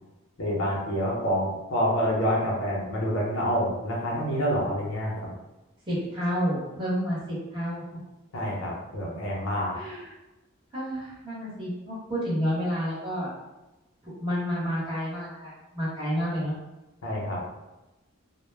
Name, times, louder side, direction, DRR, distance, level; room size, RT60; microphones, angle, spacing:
voice 1, 0.4-5.3 8.3-9.8 17.0-17.4, equal, 70° left, -3 dB, 0.7 m, -27 dB
voice 2, 5.9-7.8 9.7-10.1 10.7-13.3 14.2-16.5, equal, 25° right, -9 dB, 1.0 m, -30 dB
2.1 x 2.0 x 3.2 m, 1.0 s
head